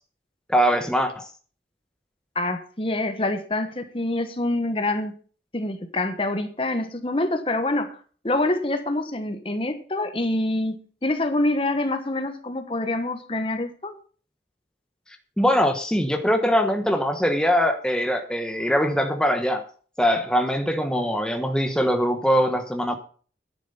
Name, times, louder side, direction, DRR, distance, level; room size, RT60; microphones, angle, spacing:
voice 1, 0.5-1.3 15.4-19.6 20.0-23.0, equal, 5° left, 1.1 m, -22 dB
voice 2, 2.3-5.1 5.5-8.0 8.2-13.9, left 2 dB, 30° left, 1.2 m, -26 dB
10.5 x 10.0 x 5.5 m
head